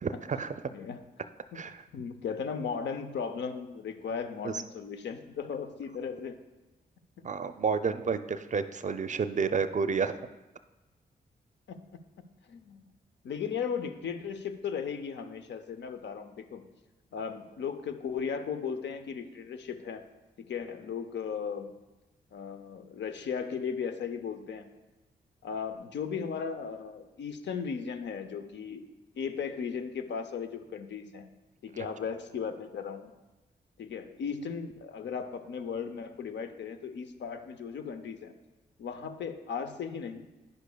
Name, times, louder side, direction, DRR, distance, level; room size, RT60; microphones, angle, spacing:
voice 1, 0.0-0.5 1.5-1.8 4.4-4.5 7.2-10.1, right 5 dB, 40° right, 11 dB, 0.5 m, -30 dB
voice 2, 0.7-1.0 1.5-1.6 1.9-6.4 11.7-11.8 12.5-12.8 13.2-16.6 17.1-20.1 20.5-21.7 22.3-24.8 25.4-28.9 29.2-31.3 31.6-33.1 33.8-38.4 38.8-40.3, left 6 dB, 70° left, 8 dB, 0.6 m, -36 dB
9.5 x 6.7 x 2.3 m, 1.0 s
supercardioid pair, 40°, 19 cm